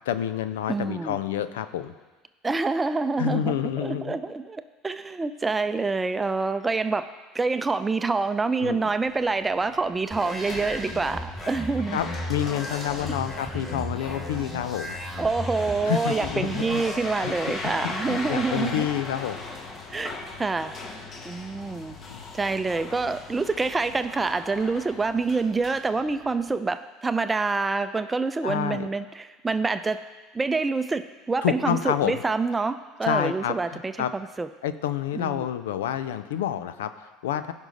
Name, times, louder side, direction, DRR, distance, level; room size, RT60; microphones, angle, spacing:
voice 1, 0.1-1.9 3.2-4.2 8.6-8.9 11.9-15.0 15.9-16.8 17.2-19.5 22.1-22.2 28.4-28.9 31.4-32.2 33.0-34.1 34.6-37.5, left 10 dB, 80° left, 12 dB, 0.5 m, -29 dB
voice 2, 0.7-1.2 2.4-7.1 7.3-12.0 15.2-18.9 19.9-20.7 21.2-22.0 22.3-30.0 30.3-34.5 35.1-35.5, right 4 dB, 20° right, 11 dB, 0.6 m, -27 dB
sound 1, 9.1-26.6, left 3 dB, 40° left, 1.4 m, -39 dB
sound 2, 10.1-17.0, left 1 dB, 15° left, 3.3 m, -36 dB
15.5 x 5.5 x 4.0 m, 1.2 s
hypercardioid pair, 75°, 0 cm